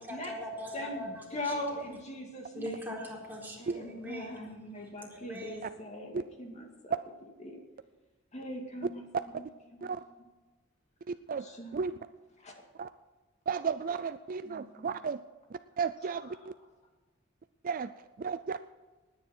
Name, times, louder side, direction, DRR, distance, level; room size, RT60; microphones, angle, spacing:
voice 1, 0.0-1.5 2.5-4.6 5.0-5.8, equal, 10° right, -4 dB, 4.1 m, -41 dB
voice 2, 0.7-2.9 3.6-7.0 7.4-7.6 8.3-9.4 9.7-9.9 11.4-11.8 12.4-12.5 14.4-14.9, left 1 dB, 35° left, 2 dB, 2.2 m, -41 dB
voice 3, 11.1-11.5 11.7-12.0 12.8-12.9 13.5-15.2 15.5-16.5 17.6-17.9 18.2-18.6, right 5 dB, 45° right, 12 dB, 0.4 m, -34 dB
19.5 x 9.8 x 4.4 m, 1.3 s
head